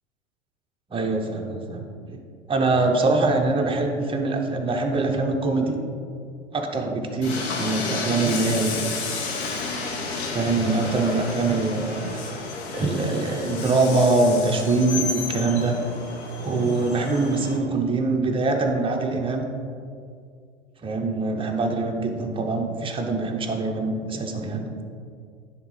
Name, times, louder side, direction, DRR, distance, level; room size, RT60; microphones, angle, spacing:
voice 1, 0.9-2.2 2.5-5.8 6.5-8.8 10.3-12.2 12.7-15.8 16.4-19.5 20.8-24.7, right 3 dB, 15° right, 2 dB, 0.7 m, -23 dB
Train, 7.2-17.6, left 4 dB, 65° left, 1.1 m, -31 dB
10.5 x 3.7 x 3.2 m, 2.3 s
hypercardioid pair, 95°, 35 cm